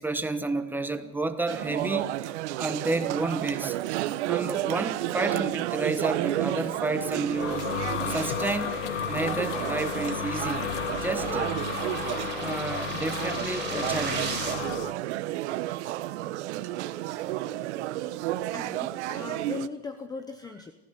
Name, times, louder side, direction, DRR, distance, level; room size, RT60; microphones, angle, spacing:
voice 1, 0.0-2.1 2.6-3.7 4.3-7.7 8.0-8.8 9.1-10.6 11.0-11.6 12.4-14.6, right 2 dB, 5° right, 8 dB, 1.2 m, -31 dB
sound 1, 1.5-19.7, right 15 dB, 65° right, 1.2 m, -32 dB
sound 2, 5.7-14.5, right 6 dB, 30° right, 7.1 m, -39 dB
sound 3, 6.9-14.9, left 10 dB, 90° left, 1.5 m, -33 dB
voice 2, 18.5-20.7, left 4 dB, 10° left, 9 dB, 0.8 m, -38 dB
27.5 x 16.0 x 8.2 m, 1.1 s
supercardioid pair, 160°, 36 cm